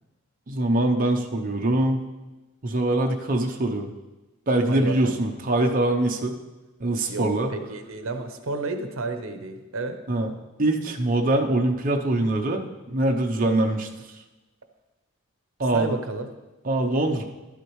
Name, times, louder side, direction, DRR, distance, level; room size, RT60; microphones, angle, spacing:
voice 1, 0.5-2.0 2.6-3.9 4.5-6.3 6.8-7.5 10.1-10.3 10.6-12.6 12.9-13.9 15.6-16.0 16.6-17.2, right 1 dB, 40° right, 2 dB, 0.7 m, -23 dB
voice 2, 4.7-5.1 7.1-10.0 15.7-16.3, right 3 dB, 70° right, 7 dB, 0.8 m, -31 dB
12.0 x 8.3 x 3.1 m, 1.1 s
head